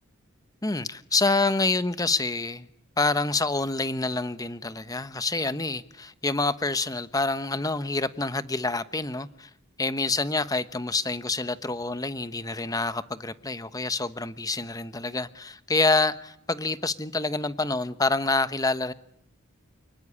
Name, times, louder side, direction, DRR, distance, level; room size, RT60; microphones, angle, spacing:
voice 1, 0.6-2.7 3.0-9.5 9.8-18.9, left 3 dB, 20° left, 1.1 m, -27 dB
29.0 x 20.0 x 9.8 m
head